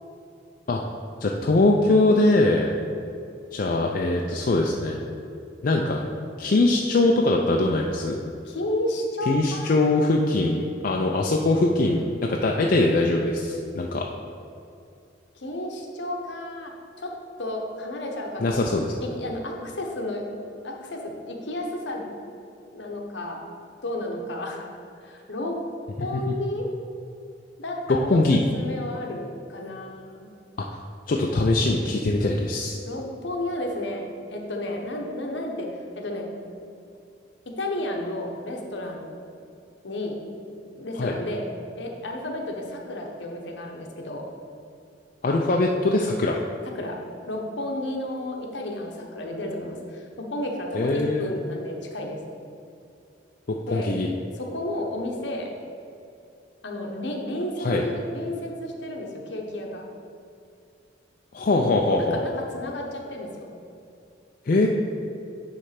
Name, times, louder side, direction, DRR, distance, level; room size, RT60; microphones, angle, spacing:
voice 1, 1.2-2.7 3.5-5.0 5.6-6.0 6.4-8.2 9.2-14.0 18.4-18.9 26.3-26.4 27.9-28.4 30.6-30.7 31.1-32.8 41.0-41.1 45.2-46.4 50.7-51.3 53.5-54.1 57.6-57.8 61.3-62.2 64.5-64.7, left 2 dB, 45° left, 0 dB, 0.4 m, -22 dB
voice 2, 8.4-9.9 15.3-16.7 17.0-17.1 17.4-18.6 19.0-20.2 20.6-22.1 22.7-23.4 23.8-24.7 25.0-25.5 26.0-26.7 27.6-30.3 32.8-34.0 34.3-35.7 36.0-36.3 37.6-39.1 39.8-40.2 40.7-41.4 41.8-44.2 46.7-47.0 47.3-52.2 53.7-53.9 54.4-55.5 56.6-59.8 61.9-63.5, left 1 dB, 65° left, 1 dB, 1.0 m, -32 dB
9.6 x 3.3 x 5.8 m, 2.6 s
head